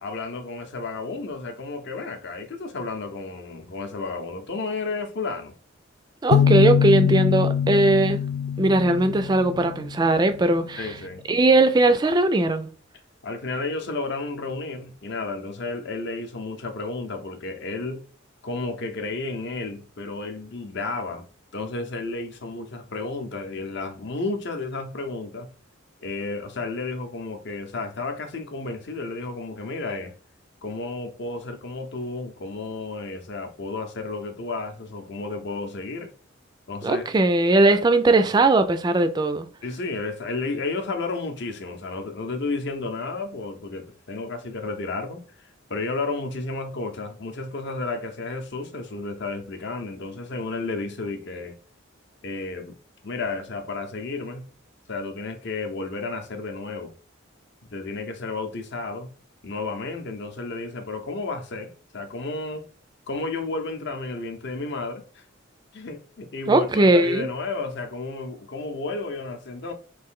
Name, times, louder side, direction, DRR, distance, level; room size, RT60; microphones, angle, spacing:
voice 1, 0.0-5.5 10.8-11.2 13.2-18.0 18.4-21.3 21.5-25.5 26.0-30.1 30.6-36.1 36.7-37.0 37.7-37.8 39.6-51.6 52.2-52.7 53.0-54.5 54.9-56.9 57.7-59.1 59.4-62.7 63.1-65.2 65.7-69.7, left 3 dB, 60° left, 0.7 m, -32 dB
voice 2, 6.2-8.2 8.6-10.9 11.3-12.7 36.8-39.5 66.5-67.3, right 2 dB, 20° right, 0.3 m, -19 dB
sound 1, 6.3-10.0, left 8 dB, 90° left, 0.3 m, -22 dB
3.2 x 2.6 x 3.6 m
head